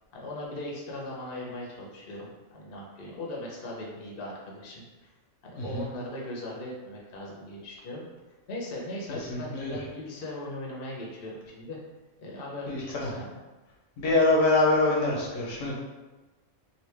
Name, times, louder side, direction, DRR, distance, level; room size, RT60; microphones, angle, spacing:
voice 1, 0.1-5.1 5.4-8.1 8.5-11.8 12.2-13.3 14.0-14.2, left 1 dB, 55° left, -2 dB, 0.8 m, -39 dB
voice 2, 5.6-5.9 9.1-9.8 12.7-13.2 14.0-15.8, left 2 dB, 80° left, -3 dB, 1.1 m, -25 dB
2.9 x 2.7 x 3.2 m, 1.2 s
omnidirectional pair, 1.3 m